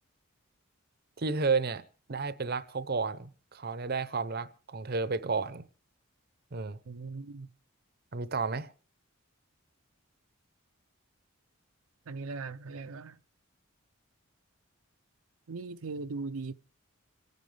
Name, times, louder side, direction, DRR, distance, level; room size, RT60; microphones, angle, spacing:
voice 1, 1.2-1.8 2.1-5.6 6.5-6.8 8.1-8.7, right 4 dB, 45° right, 0.7 m, -32 dB
voice 2, 6.9-7.5 12.1-13.2 15.5-16.5, right 3 dB, 85° right, 0.6 m, -39 dB
26.5 x 9.3 x 3.3 m
head